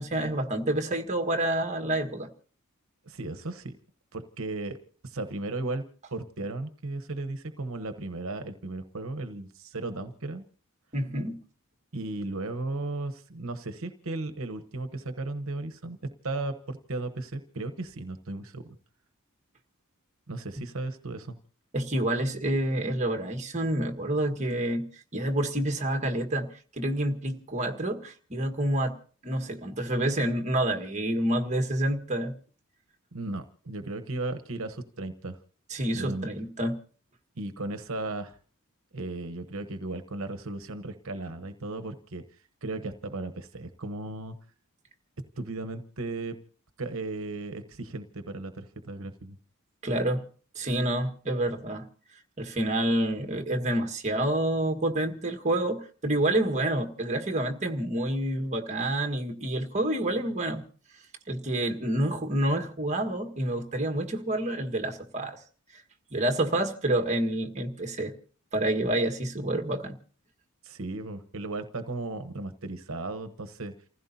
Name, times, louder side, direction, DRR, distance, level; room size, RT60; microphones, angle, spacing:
voice 1, 0.0-2.3 10.9-11.4 21.7-26.5 26.8-29.0 29.2-32.3 35.7-36.7 49.8-50.2 50.5-51.9 52.4-60.6 61.3-65.4 66.1-68.1 68.5-70.0, right 1 dB, 35° right, 1.6 m, -28 dB
voice 2, 3.1-3.7 4.1-4.8 5.0-5.8 6.1-10.5 11.9-18.8 20.3-21.3 33.1-35.4 35.9-36.3 37.4-38.4 38.9-42.2 42.6-44.3 45.4-46.4 46.8-49.4 70.6-73.7, right 2 dB, 70° right, 1.1 m, -35 dB
29.5 x 15.5 x 2.8 m
head